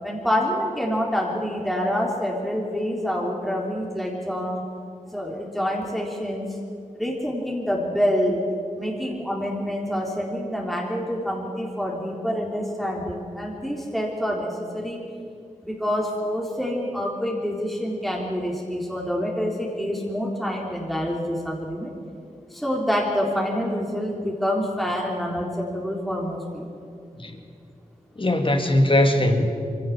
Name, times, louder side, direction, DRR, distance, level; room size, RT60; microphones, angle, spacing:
voice 1, 0.0-4.6 5.1-6.5 6.9-8.4 8.8-15.0 15.6-21.9 22.5-26.8, equal, ahead, -3 dB, 3.7 m, -27 dB
voice 2, 28.2-29.5, left 1 dB, 40° left, 5 dB, 2.4 m, -20 dB
22.5 x 16.5 x 7.3 m, 2.4 s
cardioid pair, 45°, 13 cm